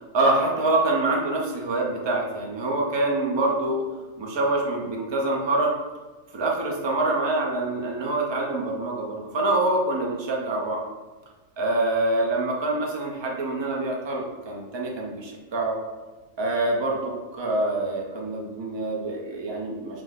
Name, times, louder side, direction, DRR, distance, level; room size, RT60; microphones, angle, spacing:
voice 1, 0.1-3.8 4.2-5.7 6.3-10.8 11.6-15.8 16.4-20.0, right 2 dB, 40° right, -1 dB, 0.4 m, -25 dB
4.9 x 2.1 x 3.8 m, 1.2 s
omnidirectional pair, 1.4 m